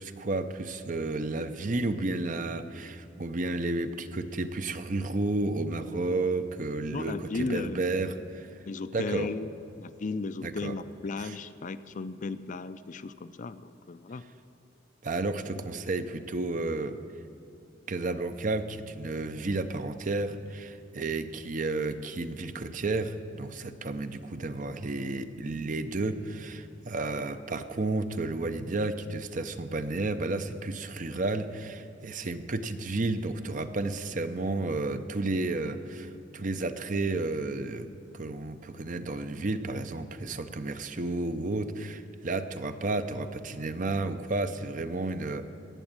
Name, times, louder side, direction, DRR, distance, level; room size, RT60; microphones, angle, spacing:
voice 1, 0.0-8.5 8.9-9.3 10.4-10.8 11.2-11.3 15.0-17.0 17.9-37.9 38.1-45.5, right 2 dB, 45° right, 9 dB, 0.7 m, -32 dB
voice 2, 6.9-7.8 8.7-9.5 9.8-14.2, left 3 dB, 40° left, 12 dB, 0.4 m, -35 dB
18.0 x 7.1 x 8.9 m, 2.7 s
head